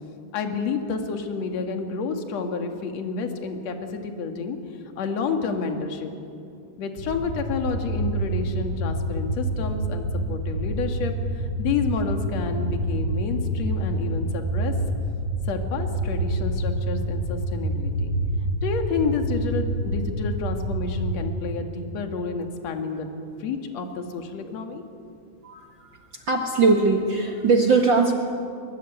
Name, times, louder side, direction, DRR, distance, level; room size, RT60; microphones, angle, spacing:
voice 1, 0.3-4.6 5.0-6.1 6.8-14.7 15.5-18.1 18.6-23.1 23.4-25.1, left 5 dB, 50° left, 5 dB, 2.8 m, -29 dB
sound 1, 7.0-21.2, right 1 dB, 75° right, 6.1 m, -27 dB
voice 2, 26.3-28.1, right 4 dB, 50° right, 2 dB, 1.5 m, -20 dB
23.0 x 22.5 x 9.2 m, 2.6 s
omnidirectional pair, 4.5 m